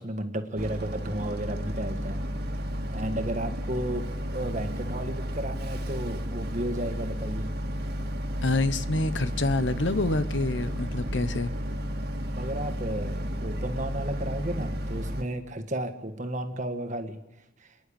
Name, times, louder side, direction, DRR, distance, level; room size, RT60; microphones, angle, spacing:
voice 1, 0.0-2.2 2.9-4.0 4.3-7.5 12.3-17.2 17.6-17.7, right 1 dB, 40° right, 6 dB, 1.6 m, -33 dB
Boat Water vehicle, 0.6-15.2, equal, 55° right, 1.9 m, -32 dB
voice 2, 8.4-11.5, left 2 dB, 70° left, 13 dB, 1.0 m, -27 dB
27.5 x 10.5 x 8.7 m, 1.0 s
head